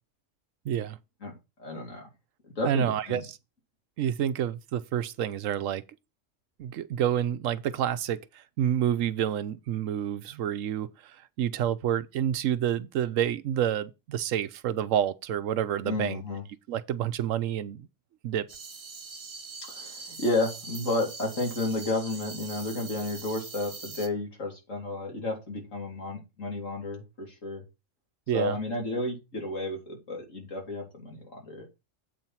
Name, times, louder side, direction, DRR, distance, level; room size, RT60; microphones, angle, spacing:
voice 1, 0.6-1.0 2.6-3.2 4.0-5.8 6.6-11.1 11.4-16.2 16.7-17.9 18.2-18.5 28.3-28.6, right 10 dB, 85° right, 1.1 m, -28 dB
voice 2, 1.6-2.1 2.6-3.2 15.8-16.4 19.7-27.6 28.3-31.7, left 2 dB, 90° left, 3.6 m, -32 dB
sound 1, 18.5-24.1, right 4 dB, 55° right, 1.5 m, -42 dB
8.2 x 4.5 x 5.6 m
omnidirectional pair, 1.3 m